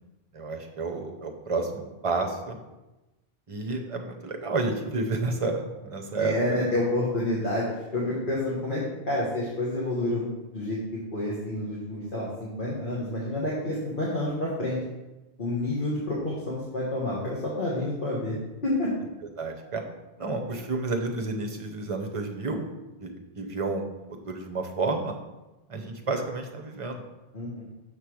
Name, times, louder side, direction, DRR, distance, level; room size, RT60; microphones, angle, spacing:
voice 1, 0.3-2.6 3.5-6.7 19.4-19.8 20.2-22.7 23.0-23.9 24.3-25.2 25.7-27.0, right 3 dB, 35° right, 4 dB, 0.8 m, -30 dB
voice 2, 6.2-7.7 7.9-10.8 11.1-14.8 15.4-18.3 18.6-18.9 27.3-27.6, left 1 dB, 55° left, -6 dB, 1.5 m, -29 dB
6.6 x 3.3 x 6.0 m, 1.0 s
omnidirectional pair, 1.0 m